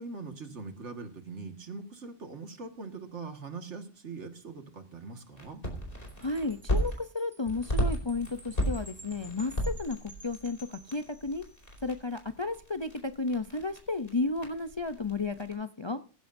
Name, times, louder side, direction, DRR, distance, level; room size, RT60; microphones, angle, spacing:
voice 1, 0.0-5.6, right 4 dB, 70° right, 6 dB, 2.1 m, -42 dB
sound 1, 5.4-7.0 7.5-15.5, equal, 50° left, 4.8 m, -35 dB
Wind chime, 6.1-11.8, right 1 dB, 10° right, 2.1 m, -53 dB
voice 2, 6.2-10.0 10.2-11.4 11.8-16.0, left 3 dB, 30° left, 9 dB, 0.6 m, -33 dB
17.5 x 15.0 x 2.6 m, 0.37 s
omnidirectional pair, 1.2 m